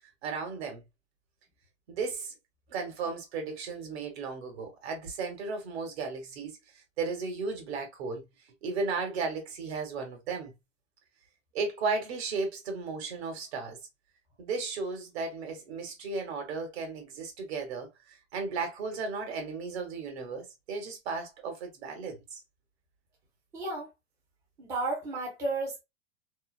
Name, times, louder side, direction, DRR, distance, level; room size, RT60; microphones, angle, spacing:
voice 1, 0.2-0.8 1.9-2.3 2.7-6.6 7.0-8.2 8.6-10.5 11.5-13.8 14.4-22.4, right 4 dB, 65° right, 1.2 m, -35 dB
voice 2, 23.5-23.9 24.6-25.8, right 2 dB, 10° right, 0.4 m, -32 dB
2.6 x 2.0 x 2.3 m
supercardioid pair, 150°, 35 cm